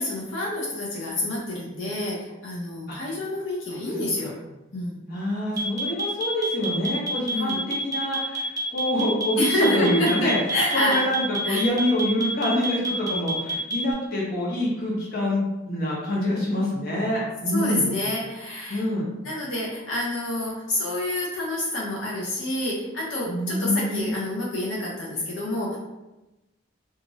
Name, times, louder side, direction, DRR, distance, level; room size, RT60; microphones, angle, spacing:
voice 1, 0.0-4.3 4.7-5.0 7.3-7.6 9.4-11.0 11.4-11.6 17.5-18.8 19.2-25.8, left 1 dB, 80° left, -5 dB, 0.7 m, -28 dB
voice 2, 5.1-10.4 10.7-17.9 18.7-19.1 23.3-24.2, left 1 dB, 50° left, -5 dB, 0.9 m, -26 dB
sound 1, 5.6-13.9, equal, 20° right, 0.7 m, -28 dB
2.9 x 2.5 x 2.6 m, 1.0 s
head